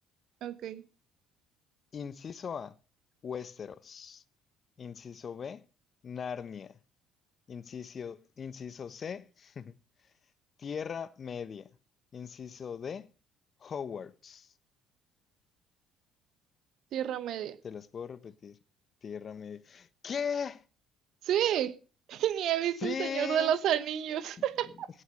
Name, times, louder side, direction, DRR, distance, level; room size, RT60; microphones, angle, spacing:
voice 1, 0.4-0.8 16.9-17.6 21.2-21.7 22.1-24.9, right 10 dB, 60° right, 1.1 m, -30 dB
voice 2, 1.9-2.8 3.2-4.2 4.8-5.7 6.0-6.8 7.5-9.7 10.6-11.7 12.1-13.1 13.6-14.5 17.6-18.6 19.0-20.7 22.8-23.5 24.4-24.5, left 7 dB, 40° left, 1.1 m, -39 dB
17.0 x 7.3 x 6.3 m
hypercardioid pair, 55°, 0 cm